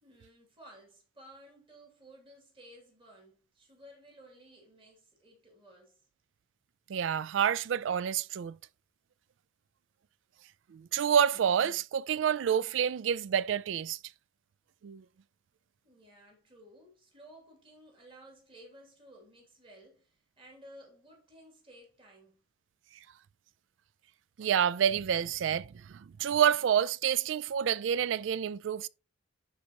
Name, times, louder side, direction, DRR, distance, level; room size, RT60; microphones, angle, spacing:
voice 1, 0.0-6.0 15.8-22.4, right 1 dB, 30° right, 2.7 m, -55 dB
voice 2, 6.9-8.6 10.7-14.0 14.8-15.0 24.4-28.9, right 8 dB, 85° right, 0.3 m, -28 dB
11.5 x 4.5 x 3.0 m
head